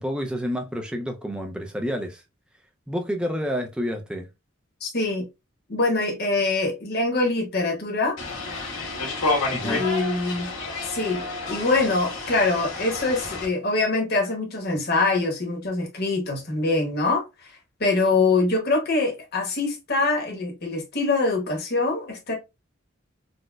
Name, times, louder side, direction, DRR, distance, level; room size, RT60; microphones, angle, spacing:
voice 1, 0.0-2.2 2.9-4.3 9.5-9.8, equal, 5° right, 0.4 m, -29 dB
voice 2, 4.8-5.2 5.7-8.2 9.6-10.5 10.8-17.5 17.8-22.3, left 3 dB, 50° left, 1.0 m, -24 dB
sound 1, 8.2-13.5, left 2 dB, 85° left, 1.6 m, -30 dB
4.1 x 2.1 x 2.3 m
head